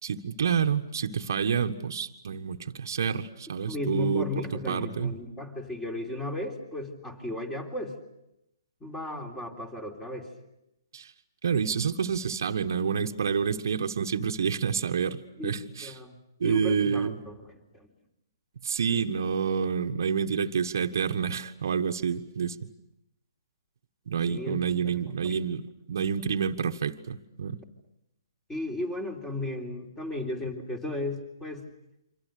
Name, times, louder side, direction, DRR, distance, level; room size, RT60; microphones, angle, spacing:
voice 1, 0.0-5.1 10.9-11.1 11.4-15.9 16.4-17.2 18.6-22.6 24.1-27.6, right 6 dB, 65° right, 4 dB, 1.4 m, -28 dB
voice 2, 3.7-7.9 8.8-10.3 15.4-15.5 15.8-16.1 16.4-17.4 17.7-17.9 24.3-25.3 28.5-31.6, left 2 dB, 10° left, 3 dB, 3.6 m, -35 dB
28.0 x 26.0 x 6.7 m, 0.86 s
hypercardioid pair, 140°, 2 cm